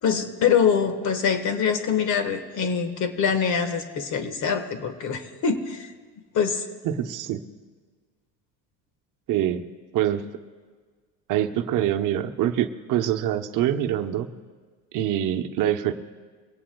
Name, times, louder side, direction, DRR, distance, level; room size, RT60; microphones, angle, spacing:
voice 1, 0.0-5.9 6.3-6.7, left 6 dB, 50° left, 9 dB, 1.5 m, -24 dB
voice 2, 6.8-7.4 9.3-9.6 9.9-10.2 11.3-14.3 14.9-15.9, right 11 dB, 55° right, 7 dB, 0.9 m, -24 dB
22.5 x 17.0 x 2.3 m, 1.6 s
supercardioid pair, 95°, 38 cm